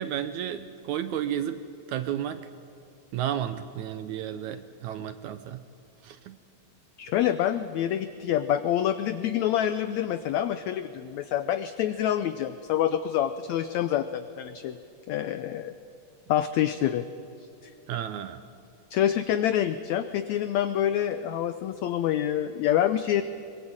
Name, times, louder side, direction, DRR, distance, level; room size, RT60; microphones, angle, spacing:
voice 1, 0.0-1.6 1.9-2.5 3.1-5.6 6.0-6.4 17.9-18.4, right 10 dB, 75° right, 11 dB, 1.8 m, -32 dB
voice 2, 7.0-14.8 15.1-15.7 16.3-17.0 18.9-23.2, left 11 dB, 85° left, 11 dB, 1.6 m, -26 dB
22.5 x 21.0 x 8.7 m, 2.5 s
omnidirectional pair, 4.0 m